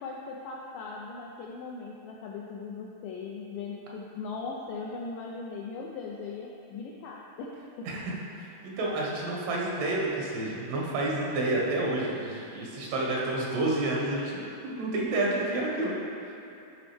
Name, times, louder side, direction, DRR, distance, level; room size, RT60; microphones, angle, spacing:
voice 1, 0.0-7.9, left 4 dB, 85° left, -3 dB, 1.9 m, -39 dB
voice 2, 8.4-15.9, right 2 dB, 90° right, -3 dB, 3.3 m, -29 dB
12.0 x 5.0 x 3.4 m, 2.7 s
omnidirectional pair, 4.5 m